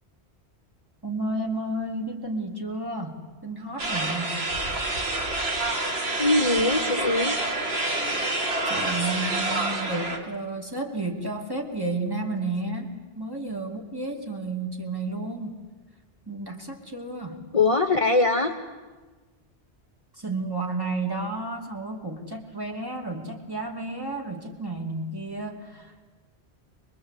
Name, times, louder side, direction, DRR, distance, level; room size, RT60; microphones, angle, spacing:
voice 1, 1.0-4.4 8.6-15.6 16.3-17.4 20.2-26.1, right 2 dB, 20° right, 1 dB, 2.7 m, -32 dB
sound 1, 3.8-10.2, right 2 dB, 65° right, 2.4 m, -27 dB
voice 2, 6.2-7.4 17.5-18.5, left 3 dB, 30° left, 7 dB, 1.0 m, -22 dB
24.0 x 21.5 x 8.4 m, 1.3 s
omnidirectional pair, 1.1 m